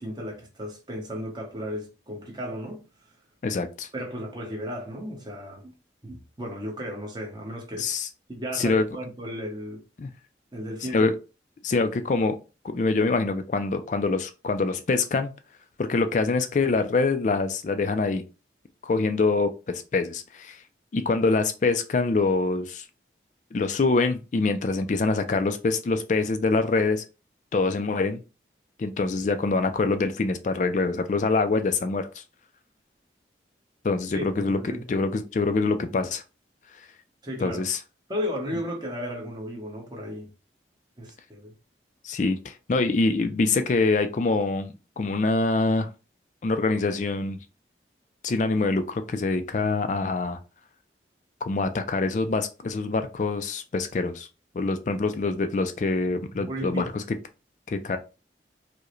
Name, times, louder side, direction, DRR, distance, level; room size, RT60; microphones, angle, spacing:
voice 1, 0.0-2.8 3.9-5.7 6.0-7.9 8.3-9.8 10.5-11.1 34.1-34.8 37.2-37.6 38.1-40.3 41.0-41.5 56.3-56.8, equal, 25° right, 0.9 m, -34 dB
voice 2, 3.4-3.9 7.8-8.1 8.5-8.9 10.0-10.1 10.8-11.1 11.6-12.4 12.6-15.3 15.8-18.2 18.8-20.6 20.9-22.8 23.5-27.0 27.5-28.2 28.8-32.2 33.8-34.6 34.9-36.2 37.4-37.8 42.0-45.9 46.4-47.4 48.2-50.4 51.4-54.3 54.5-57.0 57.7-58.0, left 3 dB, 45° left, 0.3 m, -25 dB
4.6 x 2.1 x 3.0 m
head